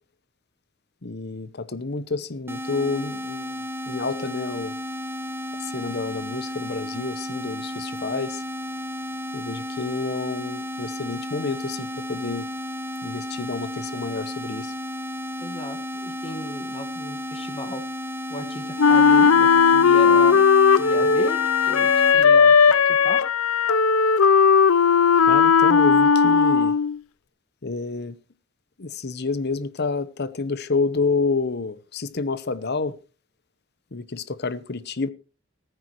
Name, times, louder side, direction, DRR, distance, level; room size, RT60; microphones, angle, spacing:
voice 1, 1.0-3.5 3.9-4.7 5.7-8.4 9.3-12.5 13.0-14.7 25.3-26.7 27.6-28.2 28.8-32.9 33.9-35.1, left 4 dB, 50° left, 0.9 m, -29 dB
sound 1, 2.5-22.2, equal, 10° right, 1.2 m, -33 dB
voice 2, 15.4-17.8 18.3-20.5 20.7-22.6 22.8-23.2, left 1 dB, 25° left, 1.7 m, -36 dB
Wind instrument woodwind instrument, 18.8-27.0, left 6 dB, 90° left, 0.6 m, -16 dB
15.0 x 13.5 x 3.1 m
head